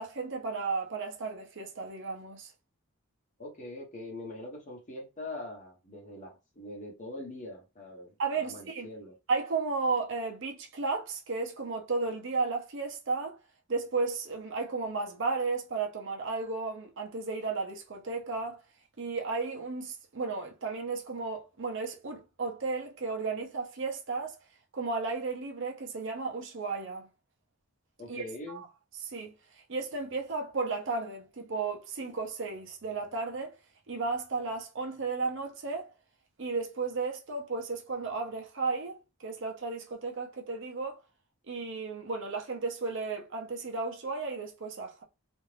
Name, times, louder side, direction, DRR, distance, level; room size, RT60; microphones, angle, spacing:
voice 1, 0.0-2.5 8.2-8.9 9.3-13.4 13.7-18.6 19.0-24.4 24.7-27.1 28.1-28.7 29.0-29.3 29.7-33.5 33.9-35.9 36.4-41.0 41.5-45.0, right 4 dB, 55° right, 0.6 m, -34 dB
voice 2, 3.4-9.1 28.0-28.6, left 2 dB, 35° left, 1.1 m, -43 dB
2.6 x 2.4 x 3.3 m
head